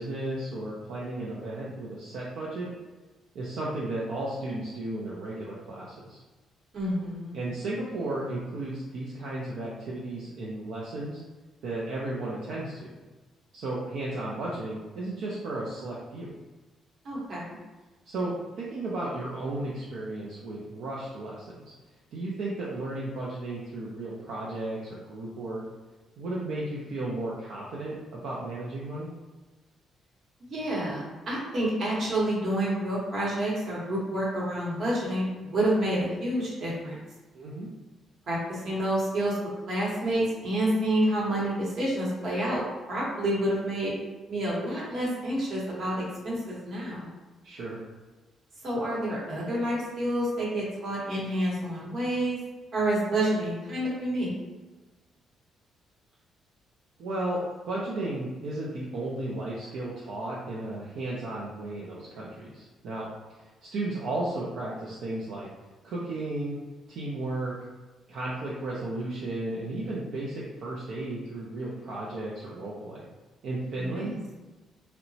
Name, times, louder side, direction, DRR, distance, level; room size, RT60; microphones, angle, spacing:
voice 1, 0.0-2.7 3.3-6.2 7.3-11.2 11.6-12.9 13.5-16.3 18.1-21.7 22.1-25.6 26.2-29.1 37.3-37.7 47.4-47.8 57.0-63.1 63.4-65.5 65.8-66.6 66.9-67.5 68.1-73.1 73.4-74.1, right 2 dB, 70° right, -5 dB, 0.4 m, -34 dB
voice 2, 6.7-7.4 17.0-17.6 30.4-37.0 38.3-39.4 39.7-42.6 42.9-44.0 44.3-47.1 48.6-52.4 52.7-54.3 73.7-74.2, right 1 dB, 50° right, -5 dB, 0.9 m, -28 dB
2.8 x 2.1 x 2.6 m, 1.2 s
cardioid pair, 140°, 0 cm